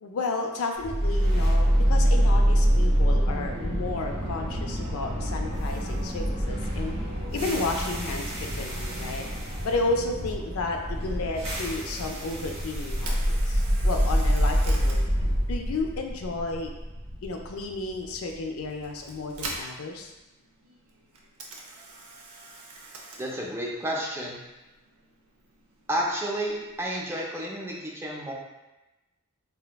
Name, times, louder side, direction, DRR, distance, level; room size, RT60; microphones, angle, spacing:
voice 1, 0.0-8.2 8.5-15.0 15.4-16.7 17.2-20.1, left 3 dB, 75° left, 3 dB, 0.4 m, -32 dB
sound 1, 0.8-18.9, equal, 65° right, 1.1 m, -26 dB
Camera, 12.9-27.0, right 2 dB, 90° right, 0.5 m, -45 dB
voice 2, 23.2-24.4 25.9-28.3, right 1 dB, 10° right, -3 dB, 0.4 m, -31 dB
3.3 x 2.8 x 2.2 m, 1.1 s
head